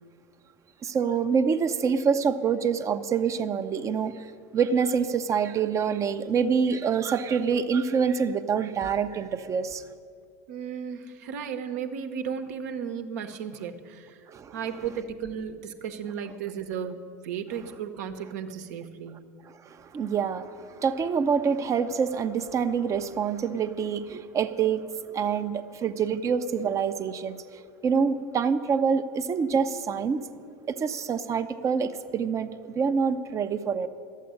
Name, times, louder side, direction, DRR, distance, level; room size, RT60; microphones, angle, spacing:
voice 1, 0.8-9.8 14.3-14.6 19.4-24.9 25.1-30.3 30.7-33.9, right 6 dB, 35° right, 9 dB, 0.7 m, -26 dB
voice 2, 10.5-14.2 14.5-19.3, right 7 dB, 70° right, 7 dB, 1.1 m, -35 dB
12.0 x 8.3 x 9.7 m, 2.3 s
hypercardioid pair, 85°, 9 cm